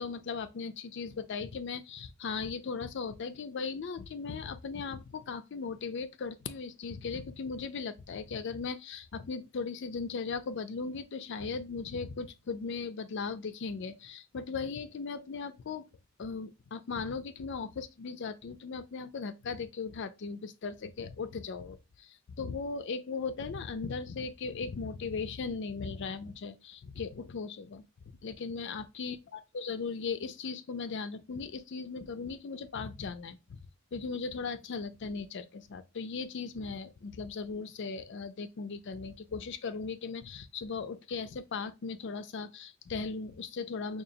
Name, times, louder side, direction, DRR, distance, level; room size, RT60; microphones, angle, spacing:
voice 1, 0.0-15.8 16.2-21.8 22.4-27.9 28.2-29.2 29.5-33.6 33.9-44.0, left 5 dB, 55° left, 0.4 m, -38 dB
5.1 x 2.4 x 2.7 m
head